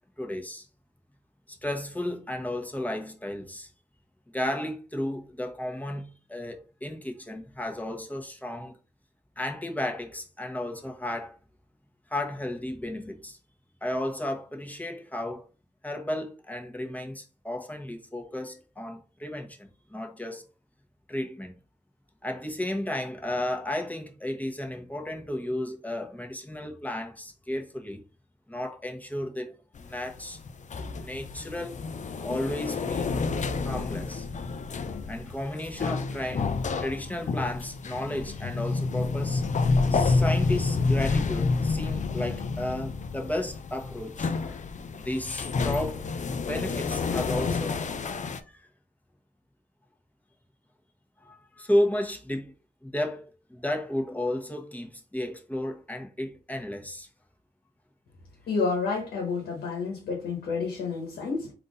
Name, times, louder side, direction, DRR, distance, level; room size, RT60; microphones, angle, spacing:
voice 1, 0.2-0.7 1.5-3.7 4.3-8.8 9.4-11.4 12.1-13.4 13.8-15.5 15.8-20.4 21.1-21.5 22.2-28.0 28.5-30.4 30.9-31.7 32.2-33.2 33.6-34.3 34.6-36.5 36.8-39.5 39.9-44.6 45.0-46.0 46.4-47.8 48.5-48.7 51.2-52.5 52.8-57.1, left 1 dB, 10° left, 1.2 m, -33 dB
sound 1, 29.7-48.4, left 4 dB, 50° left, 0.5 m, -29 dB
voice 2, 58.5-61.5, left 4 dB, 90° left, 1.1 m, -29 dB
3.6 x 2.8 x 3.9 m
cardioid pair, 55°, 16 cm